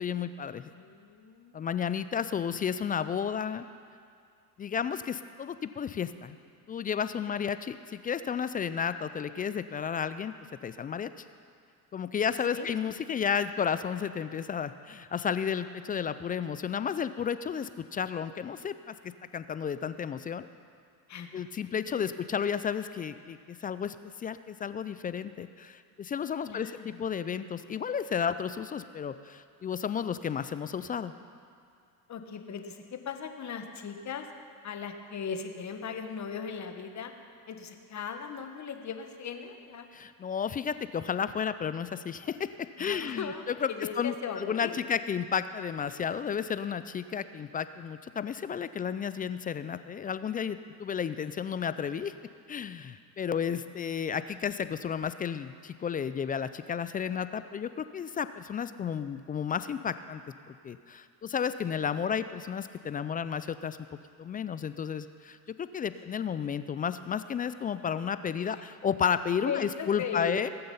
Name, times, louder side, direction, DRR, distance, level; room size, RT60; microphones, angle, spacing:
voice 1, 0.0-0.7 1.5-3.7 4.6-6.4 6.7-10.3 10.6-11.1 11.9-18.9 19.3-20.5 21.3-31.1 39.9-42.5 42.8-43.3 43.6-43.7 44.0-52.1 52.5-60.2 60.5-63.8 64.2-70.5, left 7 dB, 20° left, 13 dB, 0.3 m, -32 dB
voice 2, 0.5-1.7 12.5-12.7 21.1-21.5 21.9-22.1 26.5-27.0 32.1-34.3 34.6-37.1 37.5-39.9 42.8-44.8 68.4-68.7 69.5-70.4, left 6 dB, 35° left, 6 dB, 1.5 m, -38 dB
20.0 x 7.6 x 5.6 m, 2.3 s
hypercardioid pair, 80°, 46 cm